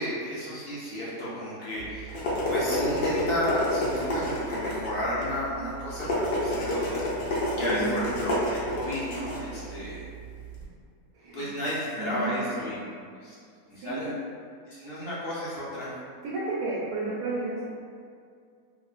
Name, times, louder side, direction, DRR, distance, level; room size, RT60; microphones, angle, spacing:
voice 1, 0.0-7.0 7.5-10.0 11.3-12.8 13.1-13.4 13.7-14.1 14.7-15.9, left 1 dB, 65° left, -9 dB, 0.6 m, -32 dB
sound 1, 1.8-10.6, left 1 dB, 80° left, 1.1 m, -30 dB
voice 2, 7.6-8.1 11.1-11.5 12.0-12.7 13.8-14.1 16.2-17.7, right 3 dB, 75° right, -6 dB, 1.0 m, -32 dB
3.0 x 2.0 x 2.4 m, 2.2 s
omnidirectional pair, 1.6 m